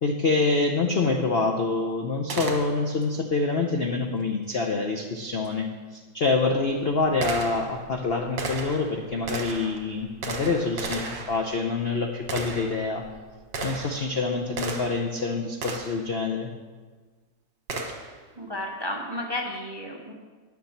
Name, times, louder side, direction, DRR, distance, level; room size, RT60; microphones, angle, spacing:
voice 1, 0.0-13.0 13.6-16.5, left 3 dB, 55° left, 2 dB, 0.7 m, -26 dB
Gunshot gunfire, 2.3-3.1 5.4-5.5 6.3-15.1 15.6-16.1 17.7-18.2, right 3 dB, 75° right, 2.1 m, -35 dB
voice 2, 18.4-20.1, left 1 dB, 20° right, 0 dB, 0.8 m, -32 dB
9.6 x 7.2 x 7.2 m, 1.4 s
omnidirectional pair, 2.0 m